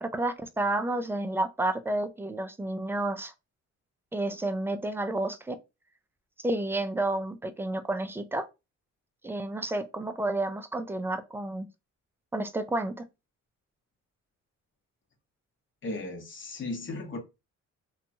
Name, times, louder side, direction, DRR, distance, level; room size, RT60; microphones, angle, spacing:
voice 1, 0.0-3.3 4.1-5.6 6.4-8.5 9.2-11.7 12.3-12.9, right 2 dB, 10° right, 0.3 m, -30 dB
voice 2, 15.8-17.2, left 2 dB, 40° left, 0.9 m, -36 dB
2.8 x 2.2 x 2.7 m
cardioid pair, 90°, 30 cm